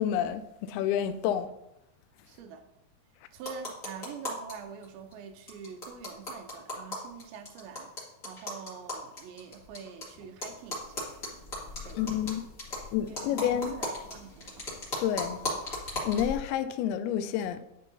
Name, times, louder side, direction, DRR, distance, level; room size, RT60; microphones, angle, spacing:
voice 1, 0.0-1.5 12.0-12.4 12.9-13.7 15.0-15.4 16.0-17.6, left 10 dB, 85° left, 2.3 m, -29 dB
voice 2, 2.2-2.7 3.3-8.0 8.2-11.1 11.9-12.1 12.7-14.7, right 6 dB, 80° right, 2.3 m, -45 dB
sound 1, 3.4-4.5 4.8-4.9 5.1-5.2 5.5-10.0 10.4-16.4, left 2 dB, 40° left, 1.2 m, -37 dB
9.9 x 5.5 x 2.7 m
omnidirectional pair, 4.7 m